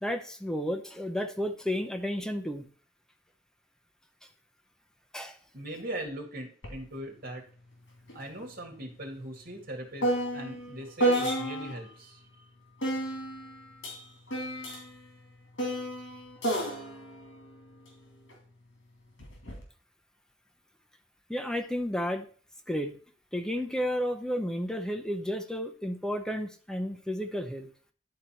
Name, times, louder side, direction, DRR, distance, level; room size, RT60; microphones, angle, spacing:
voice 1, 0.0-2.7 5.1-5.4 21.3-22.3 22.7-22.9 23.3-27.7, equal, 5° left, 6 dB, 0.6 m, -32 dB
voice 2, 5.5-7.4 8.1-12.2, right 1 dB, 55° right, 2 dB, 2.0 m, -40 dB
sound 1, 6.6-6.8 7.1-11.9 12.8-18.4 19.2-19.6, right 1 dB, 80° left, 2.6 m, -32 dB
10.5 x 4.0 x 4.4 m, 0.42 s
head